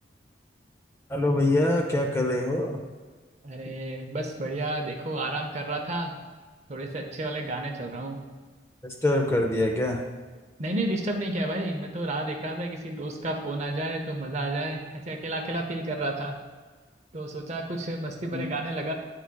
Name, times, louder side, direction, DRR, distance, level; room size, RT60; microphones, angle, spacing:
voice 1, 1.1-2.8 8.8-10.0 18.3-18.5, left 1 dB, 15° left, 0 dB, 0.6 m, -24 dB
voice 2, 3.4-6.1 6.7-8.2 10.6-16.4 17.1-18.9, right 1 dB, 35° right, 3 dB, 0.6 m, -31 dB
9.9 x 4.6 x 2.2 m, 1.4 s
head